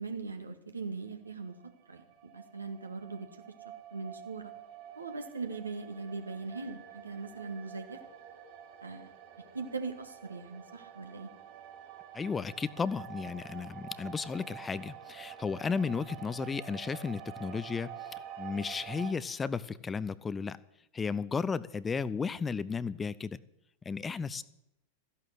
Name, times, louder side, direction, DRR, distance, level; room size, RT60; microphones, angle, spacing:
voice 1, 0.0-1.6 1.9-2.0 2.3-3.3 3.9-4.5 5.0-8.0 8.8-9.1 9.5-11.3, right 4 dB, 80° right, 6 dB, 1.9 m, -40 dB
sound 1, 1.1-19.1, right 10 dB, 45° right, 3.6 m, -48 dB
voice 2, 12.1-17.9 18.4-20.6 20.9-23.4 23.8-24.4, left 5 dB, 15° left, 17 dB, 0.6 m, -34 dB
14.0 x 11.5 x 7.9 m, 0.83 s
figure-of-eight pair, 90°, 0 cm